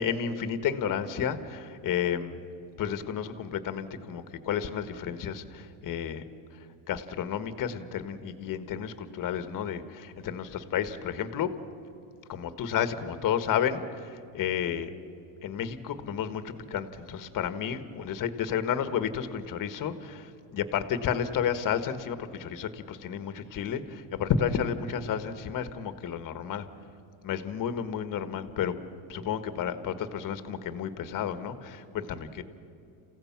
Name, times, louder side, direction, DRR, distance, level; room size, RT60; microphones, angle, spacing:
voice 1, 0.0-2.4 2.8-6.3 6.9-11.5 12.3-14.9 15.4-26.7 27.2-28.7 29.1-32.4, left 8 dB, 45° left, 11 dB, 1.6 m, -31 dB
29.5 x 16.0 x 6.0 m, 2.7 s
supercardioid pair, 110°, 44 cm